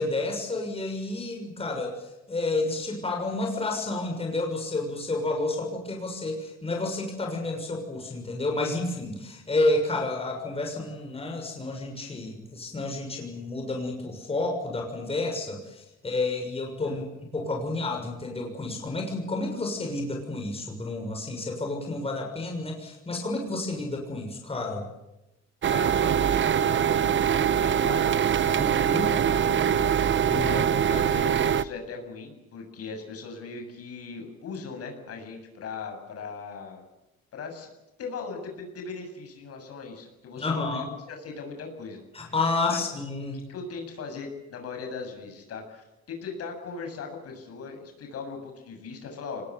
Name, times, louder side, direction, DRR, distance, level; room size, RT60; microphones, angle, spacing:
voice 1, 0.0-17.0 17.3-24.9 28.6-29.1 30.3-30.6 40.4-40.9 42.1-43.4, left 2 dB, 20° left, 2 dB, 6.5 m, -30 dB
sound 1, 25.6-31.6, right 8 dB, 40° right, 1.0 m, -23 dB
voice 2, 25.7-36.8 37.3-37.7 38.0-42.3 42.7-42.9 43.5-49.4, left 4 dB, 55° left, 4 dB, 7.5 m, -39 dB
24.5 x 20.5 x 9.6 m, 0.93 s
cardioid pair, 125°, 29 cm